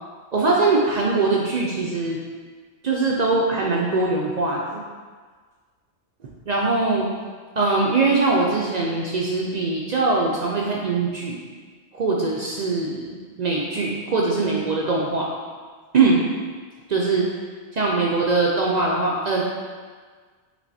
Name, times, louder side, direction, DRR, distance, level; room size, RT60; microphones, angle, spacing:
voice 1, 0.3-2.2 2.8-4.8 6.5-7.1 7.6-11.4 11.9-15.3 15.9-16.2 16.9-17.3 17.7-19.4, right 3 dB, 65° right, -3 dB, 0.4 m, -22 dB
6.4 x 3.0 x 2.6 m, 1.5 s
omnidirectional pair, 1.3 m